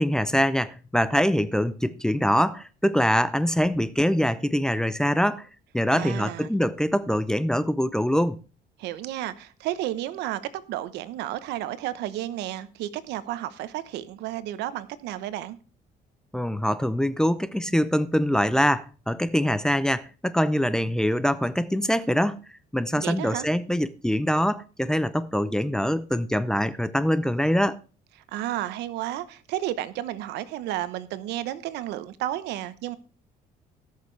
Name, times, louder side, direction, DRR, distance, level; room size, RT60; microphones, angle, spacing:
voice 1, 0.0-5.5 5.7-8.4 16.3-22.4 22.7-27.8, equal, 5° left, 0.6 m, -24 dB
voice 2, 5.9-6.5 8.8-10.4 10.7-15.6 22.9-23.5 28.3-33.0, right 13 dB, 85° right, 1.0 m, -32 dB
18.0 x 6.6 x 3.3 m
cardioid pair, 110°, 17 cm